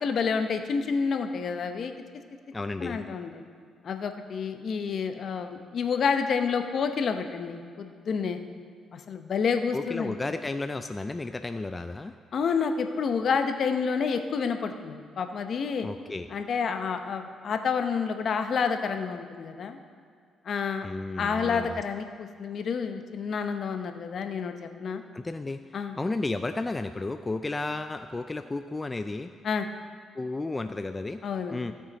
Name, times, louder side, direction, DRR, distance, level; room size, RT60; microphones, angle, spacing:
voice 1, 0.0-1.9 2.8-3.4 3.8-8.4 8.9-10.2 12.3-15.9 16.3-19.8 20.5-20.9 21.2-25.0 25.7-26.0 29.4-29.7 31.2-31.6, left 5 dB, 55° left, 7 dB, 0.8 m, -29 dB
voice 2, 2.5-3.0 9.7-12.1 15.8-16.3 20.8-21.8 25.1-29.3 30.1-31.2 31.5-31.7, left 2 dB, 20° left, 9 dB, 0.3 m, -33 dB
16.0 x 6.3 x 4.1 m, 2.2 s
cardioid pair, 90°, 0 cm